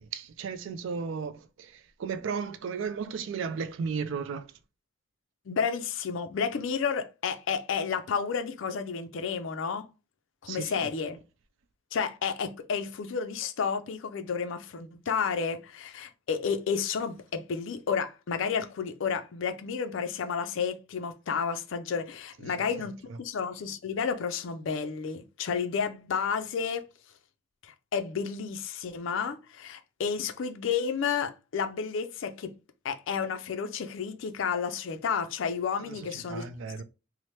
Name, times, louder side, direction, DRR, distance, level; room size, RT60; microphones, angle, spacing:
voice 1, 0.0-4.5 10.5-10.9 22.4-23.2 35.8-36.8, right 5 dB, 65° right, 0.3 m, -35 dB
voice 2, 5.5-9.8 10.4-11.2 11.9-26.9 27.6-32.5 32.8-36.5, left 6 dB, 65° left, 0.4 m, -31 dB
2.8 x 2.0 x 3.1 m
head